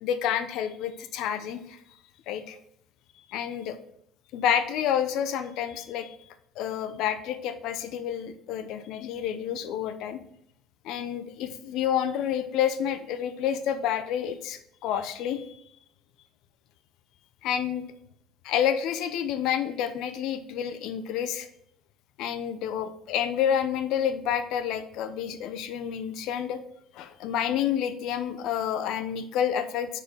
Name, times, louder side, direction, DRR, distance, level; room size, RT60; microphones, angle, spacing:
voice 1, 0.0-1.8 2.3-2.6 3.3-3.8 4.3-6.2 6.6-10.2 10.8-15.6 17.4-17.9 18.4-21.5 22.2-26.6 26.9-30.0, left 9 dB, 70° left, 10 dB, 0.6 m, -29 dB
4.9 x 4.4 x 5.6 m, 0.74 s
supercardioid pair, 95°, 0 cm